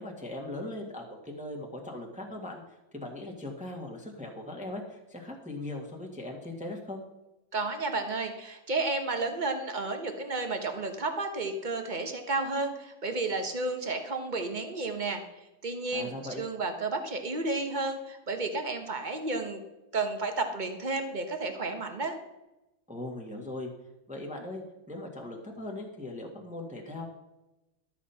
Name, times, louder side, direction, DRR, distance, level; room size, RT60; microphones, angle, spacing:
voice 1, 0.0-2.6 2.9-7.0 15.9-16.4 22.9-23.7 24.1-27.1, left 2 dB, 5° right, 0 dB, 1.5 m, -39 dB
voice 2, 7.5-15.2 15.6-19.6 19.9-22.2, right 3 dB, 30° right, 6 dB, 1.0 m, -32 dB
12.5 x 7.4 x 5.7 m, 0.97 s
omnidirectional pair, 2.1 m